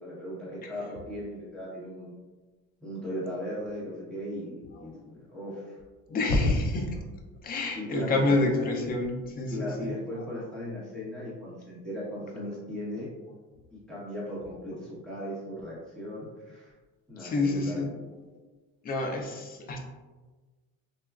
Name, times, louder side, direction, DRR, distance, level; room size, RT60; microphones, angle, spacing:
voice 1, 0.0-2.1 2.8-5.8 6.4-6.5 7.7-8.3 9.5-13.1 13.7-16.7 17.1-17.9, equal, ahead, -8 dB, 1.0 m, -37 dB
voice 2, 6.1-7.0 7.4-9.9 17.2-17.9 18.8-19.8, left 2 dB, 30° left, 3 dB, 0.4 m, -27 dB
3.2 x 2.2 x 2.3 m, 1.3 s
cardioid pair, 140°, 32 cm